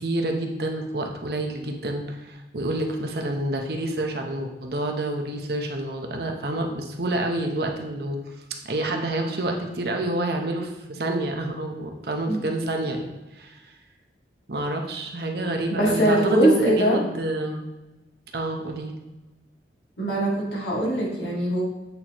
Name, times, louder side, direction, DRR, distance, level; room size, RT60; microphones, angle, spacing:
voice 1, 0.0-8.2 8.6-13.6 14.5-17.7 18.3-18.9, right 1 dB, 65° right, 3 dB, 0.9 m, -28 dB
voice 2, 15.7-17.0 20.0-21.6, right 1 dB, 80° left, -4 dB, 2.2 m, -22 dB
8.3 x 4.2 x 3.0 m, 1.0 s
head